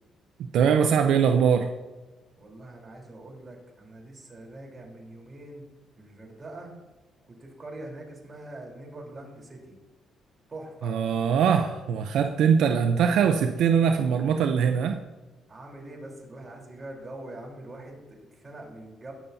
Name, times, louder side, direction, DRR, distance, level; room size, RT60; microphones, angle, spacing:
voice 1, 0.5-1.7 10.8-15.0, right 7 dB, 80° right, 6 dB, 0.6 m, -22 dB
voice 2, 2.4-5.6 6.0-6.7 7.3-9.8 10.5-11.0 15.5-19.1, right 2 dB, 30° right, -1 dB, 3.7 m, -43 dB
20.5 x 7.1 x 2.7 m, 1.2 s
cardioid pair, 90°, 0 cm